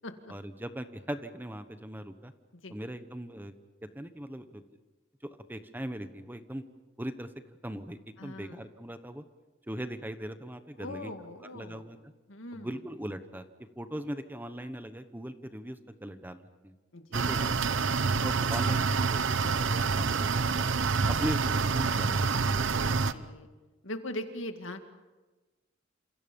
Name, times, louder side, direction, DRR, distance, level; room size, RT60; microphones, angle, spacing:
voice 1, 0.3-2.3 2.7-3.5 3.8-4.6 5.2-6.7 7.0-7.3 7.6-9.2 9.7-11.1 11.5-12.0 12.5-13.5 13.8-16.7 17.1-17.6 18.2-20.7 21.1-22.3 23.2-23.3, equal, 10° right, 9 dB, 1.1 m, -39 dB
voice 2, 8.2-8.6 10.8-11.8 12.3-12.8 16.9-17.5 20.9-21.1 23.1-23.5 23.8-24.8, left 1 dB, 80° left, 6 dB, 2.2 m, -41 dB
sound 1, 17.1-23.1, right 4 dB, 75° right, 0.9 m, -27 dB
29.0 x 27.5 x 5.4 m, 1.2 s
head